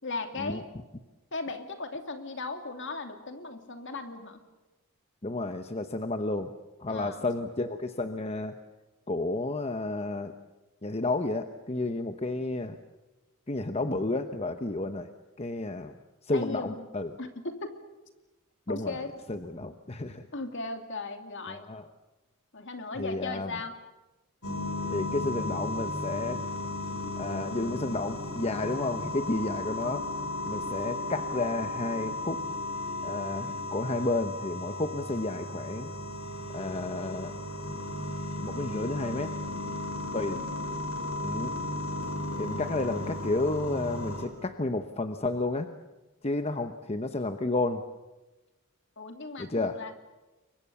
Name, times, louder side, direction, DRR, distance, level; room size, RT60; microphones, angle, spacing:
voice 1, 0.0-0.6 1.3-4.4 6.9-7.3 16.3-16.8 17.2-17.7 18.7-19.1 20.3-21.6 22.5-23.8 49.0-49.9, left 3 dB, 55° left, 6 dB, 2.8 m, -37 dB
voice 2, 5.2-6.5 6.8-8.6 9.1-10.3 10.8-12.8 13.5-15.1 15.4-15.9 16.2-17.1 18.7-19.0 19.3-20.3 21.5-21.9 23.0-23.5 24.9-26.4 27.2-30.1 30.4-32.4 33.0-35.9 36.5-37.3 38.4-39.3 40.1-40.5 41.2-41.5 42.4-45.7 46.2-47.8 49.4-49.8, left 2 dB, 30° left, 8 dB, 1.0 m, -31 dB
sound 1, 24.4-44.3, left 2 dB, 85° left, 5.3 m, -35 dB
29.5 x 23.5 x 7.0 m, 1.1 s
head